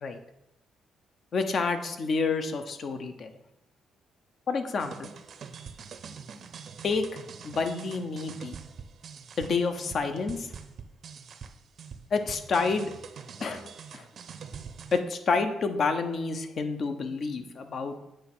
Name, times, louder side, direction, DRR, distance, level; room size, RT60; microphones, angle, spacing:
voice 1, 1.3-3.3 4.5-5.1 6.8-7.0 7.4-8.6 9.4-10.5 12.1-12.9 13.4-13.6 13.9-14.1 14.9-18.0, left 4 dB, 50° left, 8 dB, 0.8 m, -29 dB
sound 1, 4.8-15.0, right 6 dB, 55° right, 0.6 m, -44 dB
8.0 x 3.2 x 6.1 m, 0.89 s
cardioid pair, 90°, 0 cm